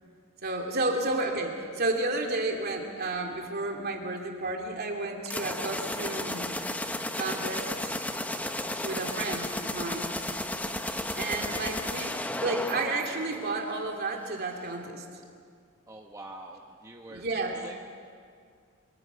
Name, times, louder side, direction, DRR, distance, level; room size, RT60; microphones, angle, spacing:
voice 1, 0.4-6.5 7.2-8.0 8.8-10.1 11.1-15.0 17.1-17.6, right 2 dB, 45° right, 2 dB, 2.6 m, -32 dB
sound 1, 5.3-13.9, left 1 dB, 5° left, 0.9 m, -33 dB
voice 2, 15.9-17.2 17.5-17.7, right 2 dB, 15° right, 1 dB, 1.1 m, -45 dB
24.0 x 23.0 x 5.7 m, 2.2 s
head